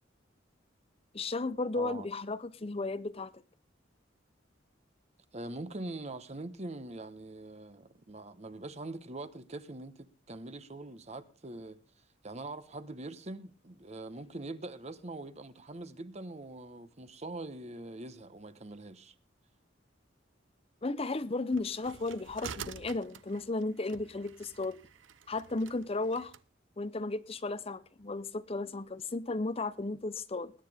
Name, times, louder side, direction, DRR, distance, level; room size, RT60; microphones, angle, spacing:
voice 1, 1.1-3.3 20.8-24.8 25.3-26.3 26.8-30.5, left 3 dB, 30° left, 0.7 m, -34 dB
voice 2, 1.7-2.1 5.3-11.8 12.2-19.1, right 2 dB, 35° right, 1.1 m, -43 dB
sound 1, 21.5-26.4, right 7 dB, 90° right, 0.8 m, -48 dB
20.5 x 9.9 x 3.5 m
head